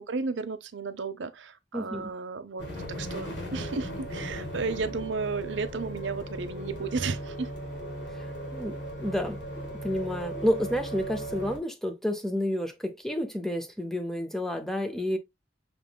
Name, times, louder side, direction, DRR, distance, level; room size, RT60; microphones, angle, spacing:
voice 1, 0.0-2.6 3.0-7.5, right 4 dB, 80° right, 0.6 m, -33 dB
voice 2, 1.7-2.1 8.1-9.4 9.8-15.2, left 1 dB, ahead, 0.6 m, -30 dB
sound 1, 2.6-11.6, right 1 dB, 85° left, 2.9 m, -37 dB
5.8 x 3.6 x 2.2 m
head